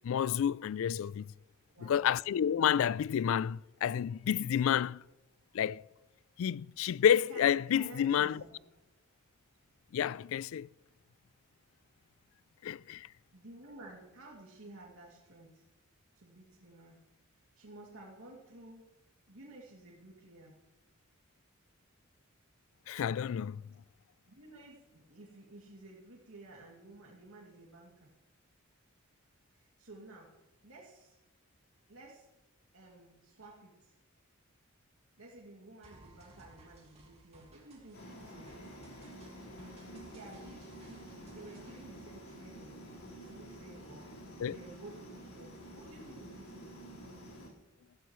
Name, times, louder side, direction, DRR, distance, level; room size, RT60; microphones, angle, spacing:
voice 1, 0.0-1.3 1.8-5.0 5.5-5.8 6.4-8.4 9.9-10.7 12.6-13.1 22.9-23.6 44.4-44.6, left 9 dB, 70° left, 0.3 m, -30 dB
voice 2, 1.7-2.1 7.3-8.5 13.3-15.6 16.1-17.0 17.5-18.9 19.3-20.6 24.3-28.1 29.5-30.3 30.6-31.2 31.9-32.3 32.7-33.9 35.2-38.6 39.9-42.8 43.1-46.7, right 2 dB, 85° right, 2.5 m, -53 dB
sound 1, 35.8-41.8, right 2 dB, 30° right, 2.9 m, -60 dB
sound 2, 37.9-47.5, right 1 dB, 90° left, 4.2 m, -49 dB
15.0 x 13.5 x 3.1 m
head